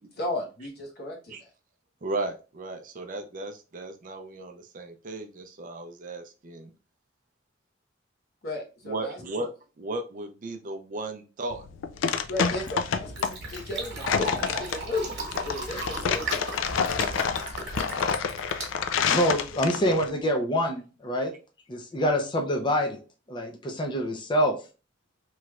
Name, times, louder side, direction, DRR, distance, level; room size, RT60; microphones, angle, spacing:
voice 1, 0.2-1.5 8.4-9.4 12.3-15.2 15.4-16.6 16.9-17.1, left 2 dB, 55° left, 0 dB, 1.0 m, -35 dB
voice 2, 2.0-6.7 8.8-9.5 9.8-11.6, right 2 dB, 45° right, 6 dB, 0.5 m, -35 dB
sound 1, 11.5-20.1, left 6 dB, 85° left, 0.4 m, -28 dB
Fill (with liquid), 12.4-19.5, right 3 dB, 60° right, 1.1 m, -37 dB
voice 3, 19.1-21.3 21.7-23.0 23.3-24.5, equal, 25° left, 2 dB, 0.5 m, -26 dB
3.1 x 3.0 x 2.4 m, 0.33 s
head